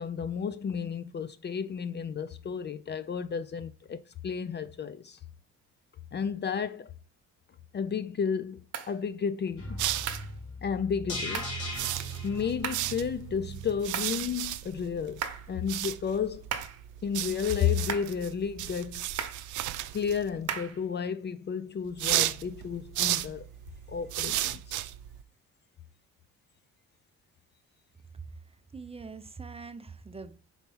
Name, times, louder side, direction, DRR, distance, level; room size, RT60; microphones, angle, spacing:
voice 1, 0.0-5.2 6.1-6.9 7.7-9.8 10.6-11.5 12.2-16.4 17.0-19.1 19.9-23.5 23.9-24.8, left 7 dB, 35° left, 0.4 m, -32 dB
sound 1, 8.7-8.9 10.1-10.3 11.3-11.6 12.6-12.9 13.9-14.2 15.2-15.5 16.5-16.8 17.9-18.2 19.2-19.5 20.5-20.8, right 7 dB, 55° right, 1.0 m, -36 dB
sound 2, 9.6-13.8 14.1-14.2, right 1 dB, 85° left, 3.0 m, -38 dB
sound 3, 9.8-10.4 11.6-20.5 21.9-25.2, right 14 dB, 80° right, 0.5 m, -34 dB
voice 2, 28.7-30.4, right 4 dB, 20° right, 0.5 m, -43 dB
4.4 x 4.2 x 5.4 m
cardioid pair, 90°, 30 cm